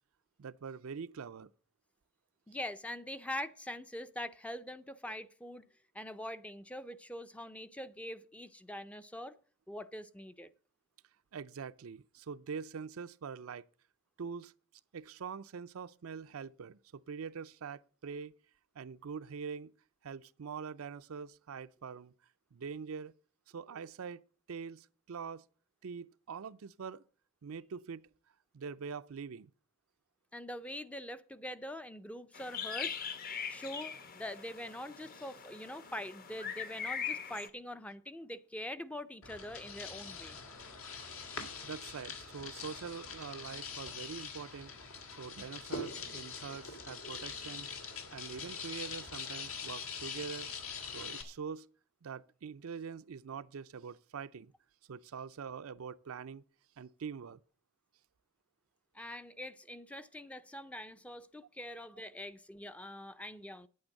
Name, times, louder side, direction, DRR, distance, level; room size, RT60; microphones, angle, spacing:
voice 1, 0.4-1.5 11.3-13.6 14.2-14.5 14.9-18.3 18.7-19.7 20.0-22.1 22.5-23.1 23.5-24.2 24.5-25.5 25.8-27.0 27.4-28.1 28.5-29.5 41.6-44.7 45.2-47.7 48.1-50.5 50.9-51.7 52.0-54.5 54.9-56.4 56.8-57.4, right 6 dB, 75° right, 0.5 m, -44 dB
voice 2, 2.5-5.6 5.9-9.4 9.7-10.5 30.3-33.0 33.5-40.4 58.9-63.7, left 1 dB, 5° left, 0.5 m, -44 dB
sound 1, 32.3-37.5, left 7 dB, 40° left, 1.0 m, -41 dB
sound 2, 39.2-51.2, left 5 dB, 75° left, 2.2 m, -43 dB
9.5 x 8.7 x 6.5 m
head